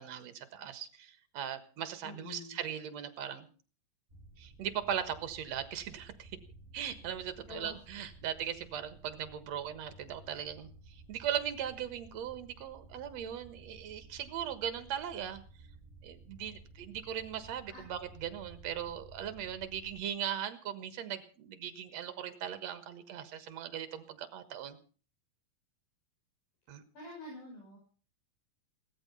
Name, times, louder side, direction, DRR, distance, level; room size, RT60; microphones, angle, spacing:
voice 1, 0.0-3.5 4.4-6.3 6.7-15.4 16.0-24.8 26.7-26.8, right 9 dB, 60° right, 11 dB, 2.4 m, -39 dB
voice 2, 2.0-2.6 7.5-7.8 17.7-17.8 26.9-27.8, left 2 dB, 70° left, -3 dB, 8.3 m, -47 dB
sound 1, 4.1-20.0, right 2 dB, 25° right, 2.3 m, -55 dB
17.5 x 13.5 x 5.6 m, 0.40 s
omnidirectional pair, 3.9 m